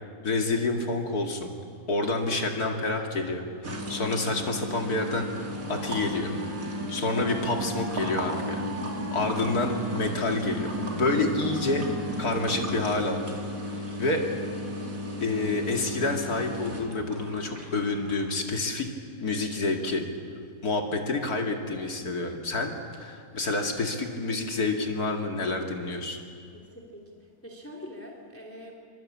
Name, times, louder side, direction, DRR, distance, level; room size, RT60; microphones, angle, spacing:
voice 1, 0.2-1.5 1.9-6.3 6.9-8.7 9.1-10.7 11.0-11.8 12.2-13.4 13.7-14.3 15.2-18.9 19.2-20.0 20.6-26.2, left 2 dB, 70° left, 3 dB, 2.8 m, -28 dB
sound 1, 3.6-18.3, equal, 55° right, 3.6 m, -34 dB
Wind instrument woodwind instrument, 5.5-12.9, right 3 dB, 25° right, 1.6 m, -41 dB
voice 2, 26.5-27.1 27.4-28.8, equal, 10° left, 0 dB, 3.1 m, -44 dB
26.5 x 24.5 x 8.6 m, 2.3 s
omnidirectional pair, 1.7 m